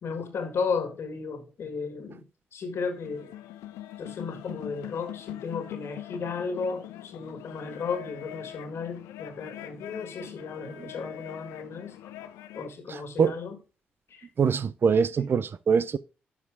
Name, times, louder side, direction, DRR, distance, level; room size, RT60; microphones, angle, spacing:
voice 1, 0.0-3.3 4.0-12.1 12.5-13.6 14.1-14.3, left 5 dB, 65° left, 1.8 m, -34 dB
sound 1, 2.9-12.7, left 13 dB, 80° left, 0.5 m, -43 dB
voice 2, 14.4-16.0, right 6 dB, 50° right, 0.5 m, -23 dB
11.0 x 4.9 x 3.6 m
hypercardioid pair, 40°, 5 cm